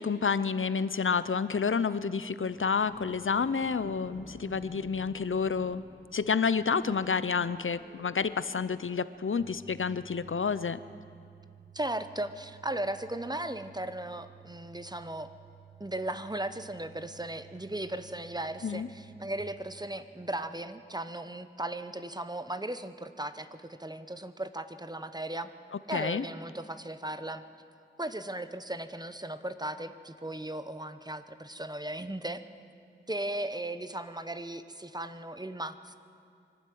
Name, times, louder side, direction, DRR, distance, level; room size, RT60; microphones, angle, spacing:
voice 1, 0.0-5.8 6.1-10.8 18.6-18.9 25.9-26.2, left 5 dB, 90° left, 15 dB, 0.6 m, -29 dB
sound 1, 2.4-9.9 10.4-10.5, equal, 5° right, 6.5 m, -52 dB
sound 2, 9.4-19.4, right 8 dB, 45° left, 1.5 m, -55 dB
voice 2, 11.7-15.3 15.8-25.5 25.9-27.4 28.0-32.4 33.1-35.9, right 1 dB, 20° right, 11 dB, 0.9 m, -37 dB
23.5 x 12.5 x 9.3 m, 2.4 s
wide cardioid pair, 50°, 20 cm